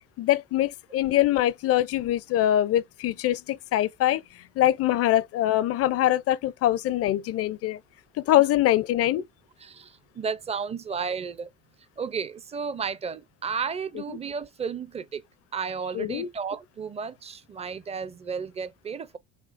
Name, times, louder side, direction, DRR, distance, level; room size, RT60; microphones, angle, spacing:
voice 1, 0.2-7.8 8.2-9.2 15.9-16.3, left 13 dB, 45° left, 0.5 m, -23 dB
voice 2, 9.6-11.5 12.0-15.2 15.5-19.2, right 6 dB, 20° right, 0.4 m, -33 dB
5.0 x 2.7 x 2.5 m
supercardioid pair, 105°, 35 cm